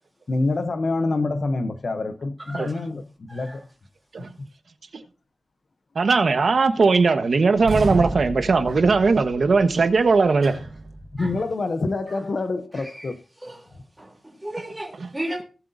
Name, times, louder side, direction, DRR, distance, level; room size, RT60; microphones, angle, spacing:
voice 1, 0.3-3.0 3.3-3.6 11.1-13.2, left 3 dB, 45° left, 0.7 m, -26 dB
voice 2, 2.4-2.7 3.3-3.6 11.2-11.3 12.7-13.1 13.4-13.6 14.0-15.4, right 1 dB, 10° right, 3.2 m, -35 dB
voice 3, 5.9-10.6, right 4 dB, 55° right, 1.2 m, -19 dB
sound 1, 7.5-11.4, right 2 dB, 70° right, 4.0 m, -31 dB
18.0 x 7.7 x 2.7 m
wide cardioid pair, 165°, 0 cm